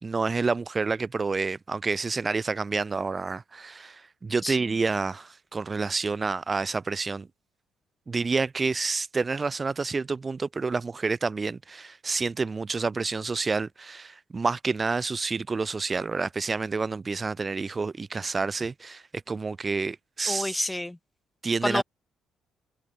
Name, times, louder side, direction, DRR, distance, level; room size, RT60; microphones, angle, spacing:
voice 1, 0.0-7.3 8.1-20.6 21.4-21.8, right 4 dB, 30° right, 2.5 m, -29 dB
voice 2, 20.3-21.0 21.6-21.8, left 1 dB, 10° left, 4.0 m, -28 dB
cardioid pair, 80°, 0 cm